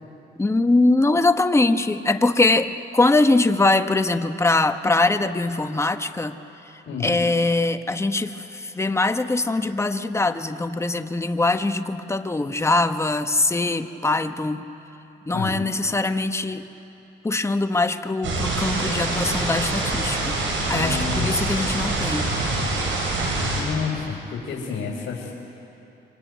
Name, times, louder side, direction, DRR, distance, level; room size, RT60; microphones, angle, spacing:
voice 1, 0.4-6.3 7.0-14.6 15.3-16.6 17.2-20.4 20.7-22.3, left 2 dB, 15° left, 8 dB, 1.1 m, -22 dB
sound 1, 18.2-23.6, right 2 dB, 75° right, 7.6 m, -25 dB
voice 2, 20.7-21.3 23.6-25.4, left 6 dB, 70° left, -3 dB, 3.6 m, -30 dB
24.5 x 24.5 x 9.3 m, 2.9 s
cardioid pair, 90°, 20 cm